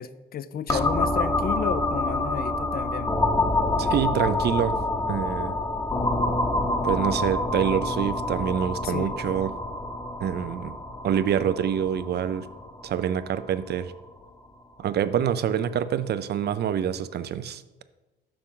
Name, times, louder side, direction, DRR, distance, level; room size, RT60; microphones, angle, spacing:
voice 1, 0.0-3.1 8.8-9.2, left 8 dB, 50° left, 14 dB, 0.4 m, -32 dB
sound 1, 0.7-14.2, left 2 dB, 20° left, 0.8 m, -27 dB
voice 2, 3.8-4.8 5.1-5.5 6.8-9.5 10.2-10.8 11.0-12.5 12.8-13.9 14.8-17.8, right 9 dB, 55° right, 13 dB, 0.5 m, -26 dB
6.9 x 5.9 x 3.8 m, 1.1 s
cardioid pair, 90°, 20 cm